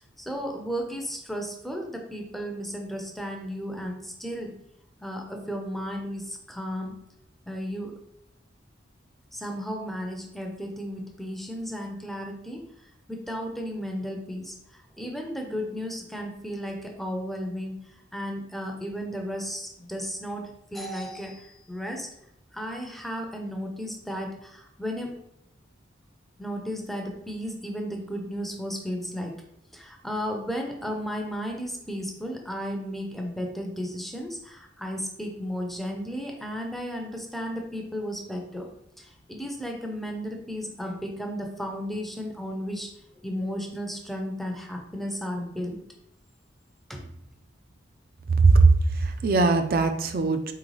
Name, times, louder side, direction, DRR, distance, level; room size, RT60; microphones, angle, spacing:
voice 1, 0.2-4.5 5.0-7.0 7.5-7.9 9.3-12.6 13.1-14.6 15.0-17.8 18.1-22.1 22.5-25.1 26.4-29.3 29.7-38.7 39.0-42.9 43.2-45.8 46.9-47.1, equal, ahead, 2 dB, 0.5 m, -34 dB
voice 2, 48.4-50.5, right 3 dB, 50° right, 7 dB, 0.5 m, -20 dB
4.4 x 3.8 x 3.2 m, 0.80 s
head